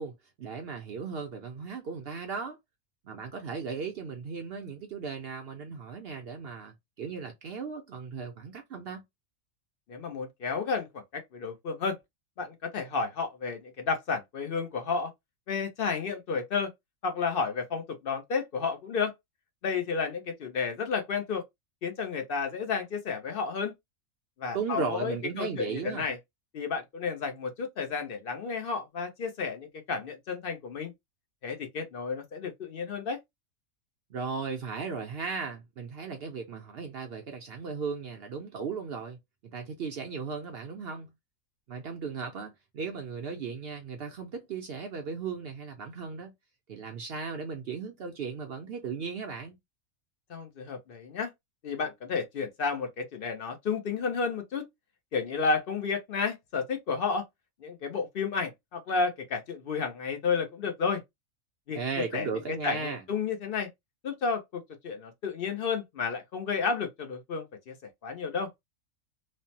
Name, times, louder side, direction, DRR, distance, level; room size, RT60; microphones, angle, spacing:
voice 1, 0.0-2.6 3.0-9.0 24.5-26.1 34.1-41.1 41.7-46.3 46.7-49.6 61.7-63.0, right 5 dB, 60° right, 0.6 m, -36 dB
voice 2, 9.9-12.0 12.4-15.1 15.5-16.7 17.0-19.1 19.6-21.4 21.8-23.7 24.4-26.2 26.5-30.9 31.4-33.2 50.3-51.3 51.6-54.7 55.1-57.2 57.6-61.0 61.7-61.8 62.1-63.7 64.0-67.7 68.0-68.5, left 5 dB, 50° left, 0.7 m, -32 dB
3.1 x 2.0 x 2.7 m
omnidirectional pair, 1.5 m